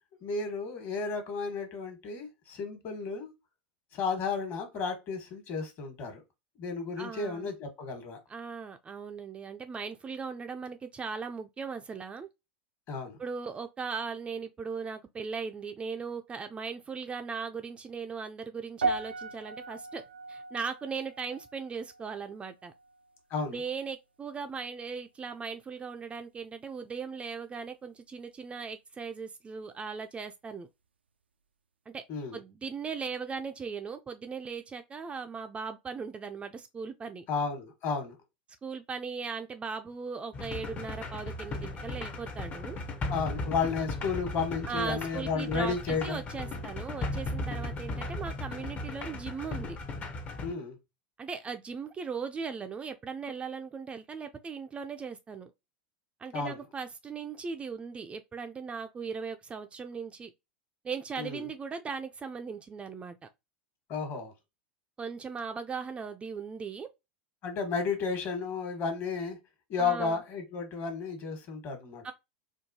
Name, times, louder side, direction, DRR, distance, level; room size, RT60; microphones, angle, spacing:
voice 1, 0.2-3.3 3.9-6.2 6.6-8.2 12.9-13.2 23.3-23.6 32.1-32.4 37.3-38.1 43.1-46.6 50.4-50.8 56.3-56.6 61.2-61.5 63.9-64.3 67.4-69.4 69.7-72.1, left 5 dB, 45° left, 1.3 m, -33 dB
voice 2, 7.0-7.5 8.3-12.3 13.2-20.0 20.3-22.7 23.5-30.7 31.9-32.0 32.3-37.2 38.6-42.8 44.7-49.8 51.2-55.5 56.2-60.3 60.8-63.2 65.0-66.9 69.8-70.2 72.0-72.1, right 5 dB, 20° right, 0.4 m, -38 dB
sound 1, 18.8-23.2 23.5-23.9 24.5-24.6, right 3 dB, 85° right, 0.4 m, -37 dB
sound 2, 40.3-50.5, left 2 dB, 30° left, 0.6 m, -37 dB
4.5 x 2.2 x 2.7 m
hypercardioid pair, 90°, 6 cm